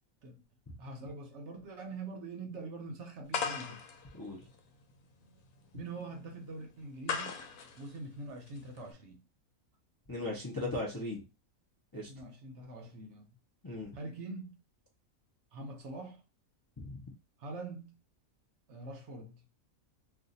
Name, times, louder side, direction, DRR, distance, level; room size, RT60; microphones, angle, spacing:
voice 1, 0.8-3.8 5.7-7.4 7.8-9.2 12.1-13.3 13.9-14.6 15.5-16.2 17.4-18.0 18.7-19.4, right 2 dB, 60° right, 0.9 m, -44 dB
sound 1, 3.3-8.9, left 6 dB, 90° left, 1.1 m, -40 dB
voice 2, 10.1-11.2 11.9-12.1 13.6-13.9 16.8-17.0, left 2 dB, 25° left, 0.5 m, -37 dB
2.5 x 2.4 x 4.0 m
omnidirectional pair, 1.5 m